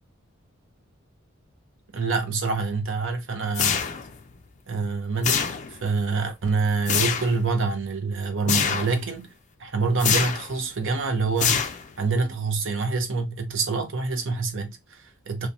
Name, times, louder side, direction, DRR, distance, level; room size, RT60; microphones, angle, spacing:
voice 1, 1.9-3.8 4.7-9.3 9.6-11.7 12.0-15.5, right 4 dB, 65° right, 0.7 m, -26 dB
sound 1, 3.5-4.2 5.2-5.9 6.9-7.4 8.5-9.0 10.0-10.5 11.4-12.1, left 7 dB, 35° left, 0.4 m, -25 dB
2.9 x 2.2 x 2.5 m
head